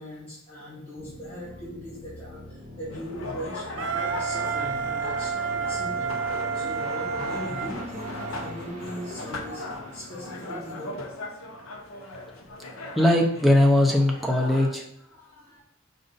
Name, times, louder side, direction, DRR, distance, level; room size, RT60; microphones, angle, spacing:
voice 1, 0.0-6.2 6.5-9.6 9.9-11.0 11.6-11.7 15.0-15.6, equal, 25° left, -9 dB, 1.6 m, -39 dB
sound 1, 1.0-11.7, left 1 dB, 35° right, 0.9 m, -43 dB
sound 2, 2.9-14.7, left 2 dB, 85° left, 0.7 m, -38 dB
Wind instrument woodwind instrument, 3.8-8.5, right 6 dB, 60° right, 0.3 m, -30 dB
voice 2, 13.0-14.8, left 1 dB, ahead, -1 dB, 0.6 m, -20 dB
5.1 x 2.5 x 3.9 m, 0.77 s
head